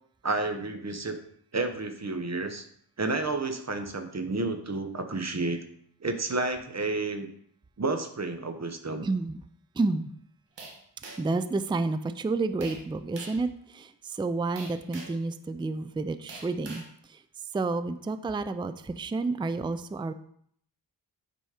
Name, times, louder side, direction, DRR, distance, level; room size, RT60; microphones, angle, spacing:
voice 1, 0.2-1.2 1.5-2.6 3.0-5.6 6.0-7.3 7.8-9.1, right 3 dB, 35° right, 7 dB, 1.1 m, -30 dB
voice 2, 9.0-9.4 9.8-10.1 11.2-13.5 13.7-16.8 17.5-20.1, right 3 dB, 10° right, 11 dB, 0.4 m, -30 dB
sound 1, 10.6-11.4 12.6-12.8 13.2-13.5 14.6-15.2 16.3-16.9, right 3 dB, 70° right, 1.5 m, -44 dB
9.1 x 4.1 x 4.9 m, 0.65 s
wide cardioid pair, 80°, 44 cm